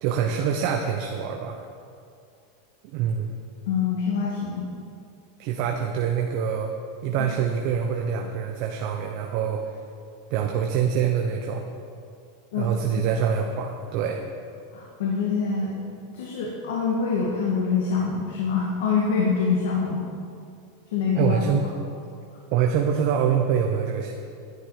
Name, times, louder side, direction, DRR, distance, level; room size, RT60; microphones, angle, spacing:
voice 1, 0.0-1.6 2.9-3.3 5.4-6.7 7.0-9.6 10.3-11.6 12.6-14.2 21.2-21.6 22.5-24.1, right 7 dB, 50° right, 2 dB, 0.9 m, -25 dB
voice 2, 3.7-4.7 7.2-7.3 12.5-12.8 14.7-15.7 16.1-20.0 20.9-21.4, left 5 dB, 80° left, -3 dB, 2.0 m, -25 dB
12.0 x 11.0 x 5.0 m, 2.4 s
supercardioid pair, 150°, 0 cm